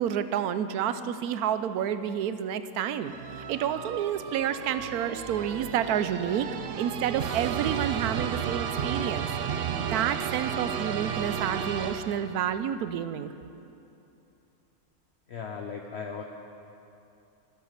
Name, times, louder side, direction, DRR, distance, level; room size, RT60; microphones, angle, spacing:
voice 1, 0.0-9.3 9.8-13.3, right 9 dB, 90° right, 12 dB, 1.1 m, -29 dB
sound 1, 3.1-12.6, right 8 dB, 70° right, 0.5 m, -33 dB
voice 2, 15.3-16.2, left 6 dB, 55° left, 2 dB, 0.9 m, -37 dB
12.5 x 11.0 x 6.5 m, 2.8 s
omnidirectional pair, 1.6 m